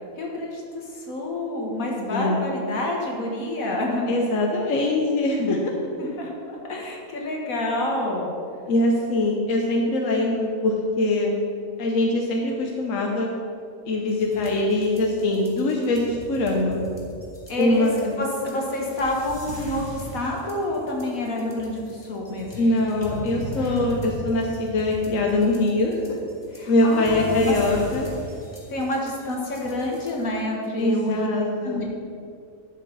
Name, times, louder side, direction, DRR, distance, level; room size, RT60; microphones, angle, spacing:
voice 1, 0.2-4.1 5.4-5.7 6.0-8.4 17.5-17.9 18.2-22.7 26.5-27.5 28.7-31.3 31.6-31.8, left 1 dB, 85° left, -1 dB, 2.0 m, -28 dB
voice 2, 2.1-2.5 4.1-5.7 8.7-11.4 11.8-13.3 13.9-16.8 17.6-18.2 22.6-26.2 26.7-28.1 30.8-31.8, left 2 dB, 70° left, 0 dB, 1.2 m, -23 dB
sound 1, 14.1-30.2, equal, 20° left, 1.5 m, -38 dB
11.5 x 7.3 x 4.0 m, 2.4 s
omnidirectional pair, 1.4 m